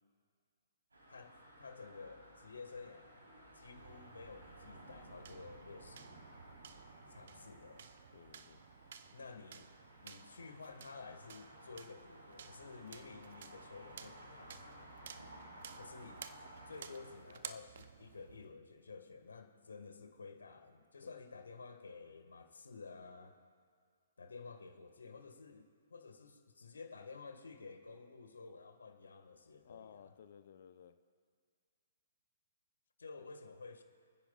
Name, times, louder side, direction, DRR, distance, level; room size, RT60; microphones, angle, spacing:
sound 1, 0.9-17.1, right 1 dB, 85° right, 3.7 m, -57 dB
voice 1, 1.1-3.3 3.5-6.2 7.1-7.9 9.1-9.7 10.0-14.9 15.8-16.3 16.7-23.4 24.2-30.1 33.0-33.8, left 4 dB, 75° left, 7 dB, 1.6 m, -52 dB
sound 2, 3.8-18.5, right 8 dB, 55° right, 0.6 m, -55 dB
voice 2, 8.1-8.6 21.0-21.2 29.6-31.0 33.2-33.3, left 8 dB, 55° left, 11 dB, 0.6 m, -57 dB
25.5 x 9.9 x 2.4 m, 2.1 s
figure-of-eight pair, 125°, 0 cm